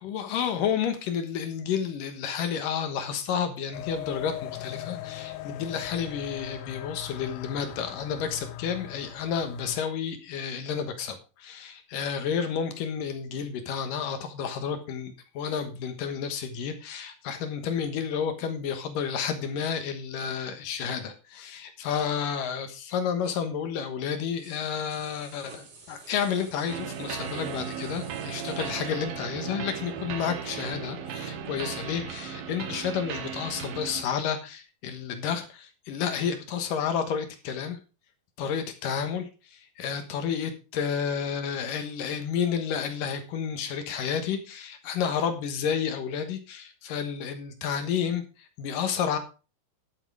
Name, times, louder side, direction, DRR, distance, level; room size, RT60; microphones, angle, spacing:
voice 1, 0.0-37.8 38.4-49.2, left 7 dB, 70° left, 7 dB, 2.8 m, -31 dB
sound 1, 3.7-9.8, left 14 dB, 85° left, 2.5 m, -40 dB
sound 2, 24.4-30.4 30.7-30.8, right 3 dB, 45° right, 3.1 m, -51 dB
sound 3, 26.7-34.0, right 8 dB, 90° right, 3.1 m, -36 dB
11.5 x 7.4 x 4.8 m, 0.33 s
omnidirectional pair, 4.2 m